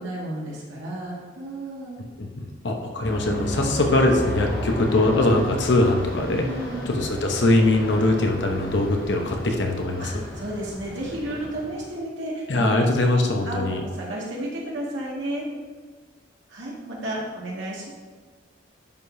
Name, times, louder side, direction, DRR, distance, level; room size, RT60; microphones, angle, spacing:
voice 1, 0.0-2.0 3.5-3.7 6.4-6.9 10.0-12.7 13.4-15.5 16.5-17.9, right 1 dB, 90° right, -4 dB, 2.0 m, -32 dB
voice 2, 2.2-6.4 6.9-10.2 12.5-13.8, left 2 dB, 70° left, 2 dB, 0.9 m, -22 dB
Aircraft, 3.0-12.0, left 1 dB, 50° left, 1.3 m, -33 dB
10.5 x 5.0 x 2.7 m, 1.5 s
head